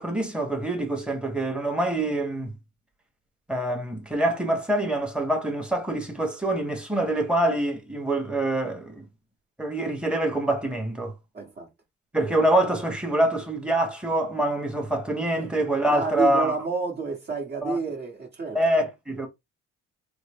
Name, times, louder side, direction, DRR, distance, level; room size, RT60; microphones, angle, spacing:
voice 1, 0.0-2.6 3.5-9.0 9.6-11.1 12.1-16.6 17.6-17.8 18.5-19.3, right 1 dB, 5° right, 1.2 m, -25 dB
voice 2, 11.3-11.7 15.4-15.5 15.9-18.6, right 4 dB, 35° right, 1.3 m, -30 dB
3.7 x 2.1 x 3.5 m
cardioid pair, 90°, 30 cm